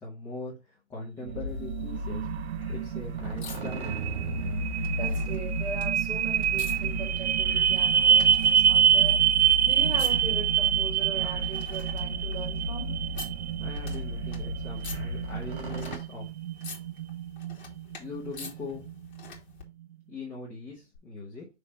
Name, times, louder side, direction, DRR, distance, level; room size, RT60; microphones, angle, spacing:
voice 1, 0.0-2.3 2.7-4.1 13.6-16.3 18.0-18.9 20.1-21.4, left 3 dB, 5° left, 0.8 m, -41 dB
sound 1, 1.2-16.0, equal, 35° right, 3.2 m, -35 dB
sound 2, 1.2-19.3, right 9 dB, 70° right, 0.5 m, -27 dB
sound 3, 1.5-19.6 20.9-21.0, left 5 dB, 40° left, 2.0 m, -48 dB
voice 2, 4.9-9.3 9.6-13.0, right 4 dB, 10° right, 3.2 m, -40 dB
5.6 x 3.4 x 5.0 m
hypercardioid pair, 150°, 35 cm